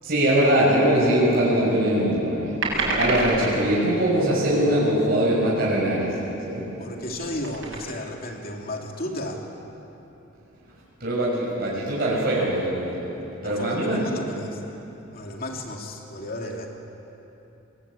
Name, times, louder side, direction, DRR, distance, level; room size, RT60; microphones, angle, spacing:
voice 1, 0.0-6.2 6.4-6.6 11.0-13.0 13.4-14.0, right 1 dB, 45° right, -6 dB, 6.6 m, -22 dB
sound 1, 2.6-3.6 6.9-7.8, right 2 dB, 70° right, 7.6 m, -26 dB
voice 2, 6.8-9.4 13.4-14.6 15.1-16.7, left 1 dB, 45° left, 1 dB, 3.1 m, -33 dB
28.0 x 22.0 x 8.6 m, 3.0 s
head